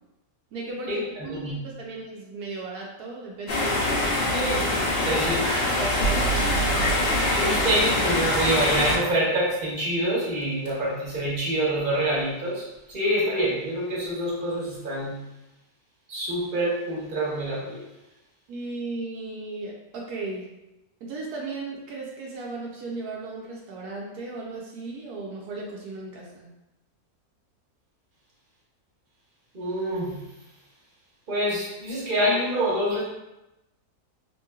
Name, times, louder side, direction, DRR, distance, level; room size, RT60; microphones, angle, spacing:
voice 1, 0.5-4.7 5.0-7.0 18.5-20.5 21.0-26.5, right 3 dB, 80° right, -2 dB, 1.1 m, -36 dB
sound 1, 3.5-9.0, left 2 dB, 50° left, 0.7 m, -24 dB
voice 2, 4.3-5.4 7.4-15.2 16.1-17.9 29.5-30.2 31.3-33.0, right 1 dB, 35° right, -7 dB, 1.1 m, -26 dB
sound 2, 6.0-9.3 10.4-10.7, right 7 dB, 75° left, 0.5 m, -32 dB
3.0 x 2.9 x 2.3 m, 0.95 s
omnidirectional pair, 1.6 m